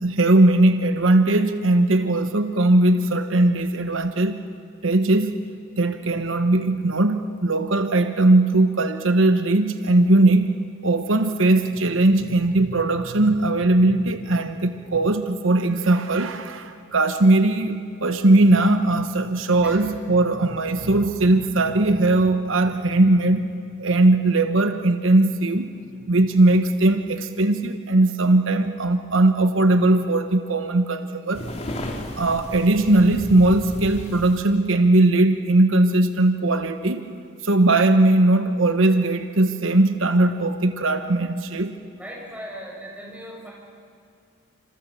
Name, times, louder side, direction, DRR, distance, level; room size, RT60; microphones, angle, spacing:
voice 1, 0.0-4.4 4.8-5.4 5.8-10.5 10.8-23.5 23.8-25.7 26.1-31.5 32.1-37.0 37.4-41.7, right 2 dB, 75° right, 8 dB, 1.1 m, -19 dB
sound 1, 31.3-34.4, left 1 dB, 30° left, 2.5 m, -34 dB
voice 2, 42.0-43.5, equal, 5° right, -4 dB, 6.7 m, -38 dB
28.5 x 27.5 x 7.1 m, 2.5 s
head